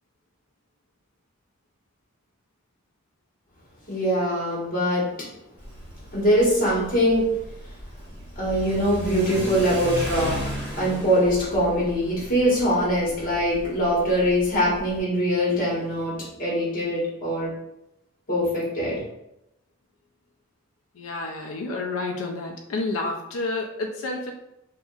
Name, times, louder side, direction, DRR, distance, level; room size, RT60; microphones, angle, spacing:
voice 1, 3.9-5.0 6.1-7.3 8.4-10.4 10.8-16.1 16.4-17.5 18.3-19.0, equal, 45° left, -6 dB, 1.2 m, -22 dB
Car / Accelerating revving vroom, 5.6-15.0, equal, 25° right, 1.3 m, -35 dB
voice 2, 21.0-24.3, left 2 dB, 90° left, 2 dB, 0.4 m, -30 dB
2.8 x 2.5 x 2.3 m, 0.87 s
head